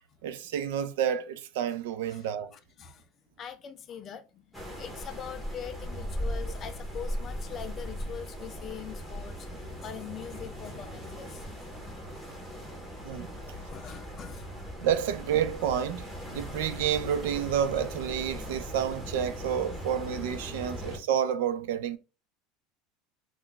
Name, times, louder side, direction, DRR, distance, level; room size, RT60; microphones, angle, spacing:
voice 1, 0.2-2.5 6.5-6.6 13.0-13.3 14.8-22.0, right 9 dB, 80° right, 0.3 m, -29 dB
voice 2, 2.1-3.1 3.4-11.5 13.5-14.5, left 8 dB, 30° left, 0.3 m, -43 dB
sound 1, 4.5-21.0, equal, ahead, 0.7 m, -39 dB
2.3 x 2.1 x 3.8 m
supercardioid pair, 155°, 0 cm